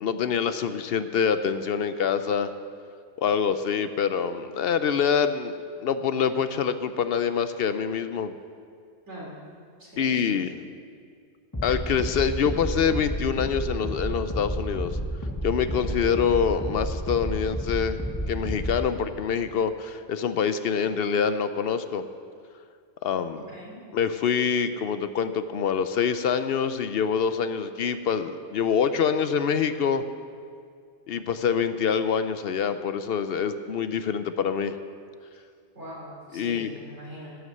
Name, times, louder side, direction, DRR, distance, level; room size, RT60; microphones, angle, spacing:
voice 1, 0.0-2.5 3.2-5.5 5.8-8.4 10.0-10.5 11.6-15.0 15.4-18.0 18.3-22.0 23.0-23.4 23.9-30.0 31.1-34.8 36.3-36.7, left 7 dB, 65° left, 11 dB, 0.7 m, -25 dB
voice 2, 9.1-9.4 9.8-10.4 23.5-23.8 35.7-37.3, equal, 90° right, -5 dB, 3.9 m, -41 dB
sound 1, 11.5-18.9, equal, 15° left, 1.4 m, -31 dB
11.0 x 9.5 x 6.5 m, 2.2 s
omnidirectional pair, 1.2 m